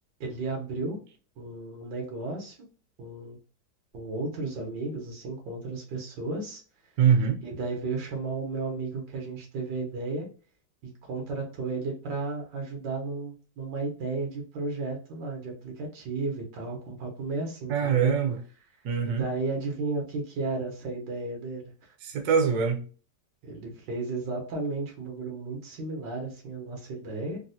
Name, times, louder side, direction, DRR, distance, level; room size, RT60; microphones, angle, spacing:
voice 1, 0.2-1.0 1.4-2.6 3.0-3.4 3.9-6.6 7.4-10.3 10.8-18.1 19.0-21.9 23.4-27.4, right 3 dB, 90° right, 1.7 m, -34 dB
voice 2, 7.0-7.4 17.7-18.4 18.8-19.3 22.0-22.8, right 7 dB, 70° right, 1.1 m, -23 dB
3.8 x 2.1 x 2.6 m
omnidirectional pair, 1.9 m